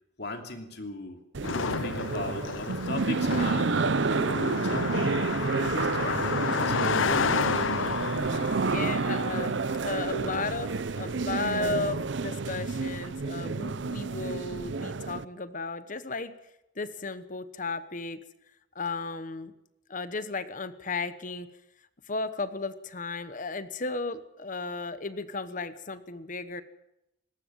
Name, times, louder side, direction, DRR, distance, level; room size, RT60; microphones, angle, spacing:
voice 1, 0.2-1.2 1.6-7.3, left 2 dB, 55° left, 5 dB, 2.8 m, -37 dB
sound 1, 1.3-15.2, right 4 dB, 70° right, 0.6 m, -29 dB
Car passing by, 1.4-11.0, left 6 dB, 85° left, 0.7 m, -32 dB
voice 2, 8.6-16.3 16.8-18.2 18.7-19.5 19.9-21.5 22.1-26.6, left 3 dB, 40° left, 13 dB, 1.1 m, -34 dB
20.5 x 18.0 x 7.4 m, 0.88 s
head